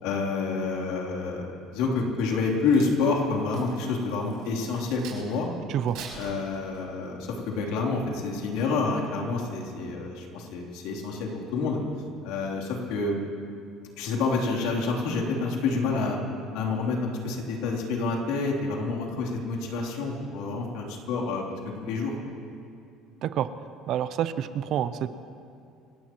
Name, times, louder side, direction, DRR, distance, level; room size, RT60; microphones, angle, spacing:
voice 1, 0.0-5.5 6.2-11.8 12.2-13.2 14.0-16.2 16.5-21.4 21.8-22.1, left 4 dB, 80° left, -1 dB, 3.2 m, -28 dB
Crack, 2.3-5.4 5.8-7.0 7.6-7.8, right 6 dB, 75° right, 5.3 m, -45 dB
voice 2, 23.9-25.1, right 10 dB, 55° right, 12 dB, 0.7 m, -27 dB
27.5 x 17.0 x 3.1 m, 2.5 s
cardioid pair, 125°, 0 cm